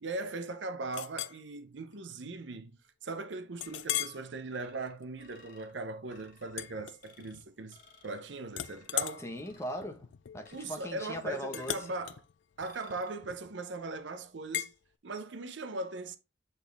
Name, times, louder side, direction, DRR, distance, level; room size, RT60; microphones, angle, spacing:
voice 1, 0.0-7.8 8.0-9.3 10.5-12.2 12.6-14.7 15.0-16.2, right 3 dB, 75° right, 0.7 m, -39 dB
Chink clink, 0.9-1.4 1.9-2.1 2.6-2.7 3.6-4.2 4.8-5.0 6.5-7.5 7.8-8.2 8.5-13.6 14.5-14.7, left 13 dB, 75° left, 0.4 m, -38 dB
sound 1, 3.6-4.2 4.5-5.7 6.1-6.6 7.0-7.4 7.7-8.2 8.6-9.0 9.4-9.9 10.4-11.0 11.5-12.0 12.6-13.1, left 4 dB, 50° left, 1.5 m, -60 dB
voice 2, 9.2-11.8, equal, 15° left, 1.2 m, -39 dB
8.0 x 4.2 x 3.5 m
head